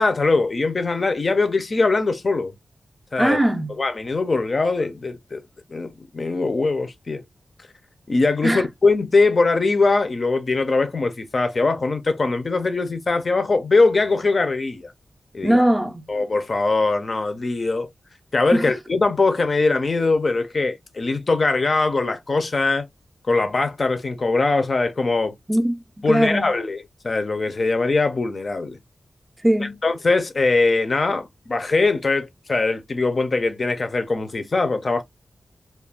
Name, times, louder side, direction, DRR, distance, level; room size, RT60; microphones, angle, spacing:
voice 1, 0.0-2.5 3.1-3.4 3.8-5.4 5.7-7.2 8.1-14.9 15.3-15.6 16.1-17.9 18.3-22.9 23.3-25.3 26.0-28.8 29.6-35.0, left 3 dB, 45° left, 0.5 m, -21 dB
voice 2, 3.2-3.7 8.4-8.7 15.4-16.0 18.5-18.7 25.5-26.5 29.4-29.8, right 1 dB, 10° right, 0.4 m, -20 dB
2.4 x 2.2 x 3.3 m
wide cardioid pair, 120°, 0 cm